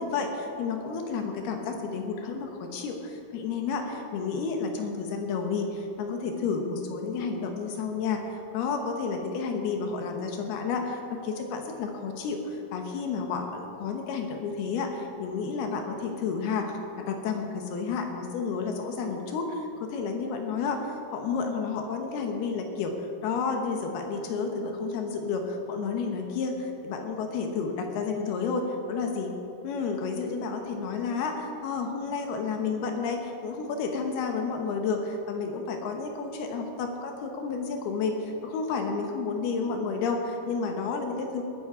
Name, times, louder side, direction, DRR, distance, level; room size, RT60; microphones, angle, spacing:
voice 1, 0.0-22.9 23.2-29.3 29.6-41.4, left 5 dB, 75° left, 3 dB, 3.0 m, -31 dB
20.0 x 10.5 x 4.9 m, 2.9 s
omnidirectional pair, 4.7 m